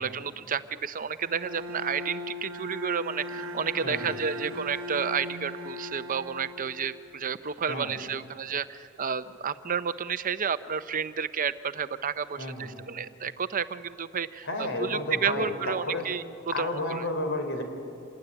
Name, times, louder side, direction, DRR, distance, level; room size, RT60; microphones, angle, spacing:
voice 1, 0.0-16.2 16.6-17.0, right 6 dB, 40° right, 13 dB, 0.6 m, -31 dB
Bowed string instrument, 1.2-7.2, left 1 dB, 70° right, 1.0 m, -38 dB
voice 2, 3.8-4.1 7.7-8.0 12.4-12.8 14.4-16.0 16.5-17.6, left 2 dB, 60° left, 6 dB, 3.8 m, -32 dB
27.0 x 19.0 x 9.8 m, 2.8 s
head